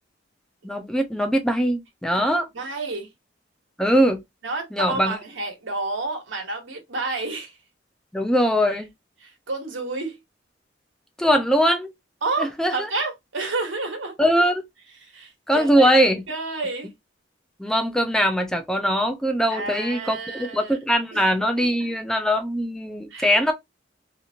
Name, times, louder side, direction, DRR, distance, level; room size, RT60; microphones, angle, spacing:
voice 1, 0.6-2.5 3.8-4.2 4.7-5.2 8.1-8.9 11.2-11.9 12.4-12.9 14.2-14.6 15.5-16.2 17.6-23.5, equal, 5° left, 0.4 m, -21 dB
voice 2, 2.1-3.1 4.4-7.5 9.2-10.2 12.2-14.1 15.0-16.0 16.3-16.9 19.5-20.8 21.1-21.2 21.6-21.9 23.1-23.4, right 3 dB, 80° right, 1.2 m, -30 dB
2.9 x 2.5 x 2.6 m
head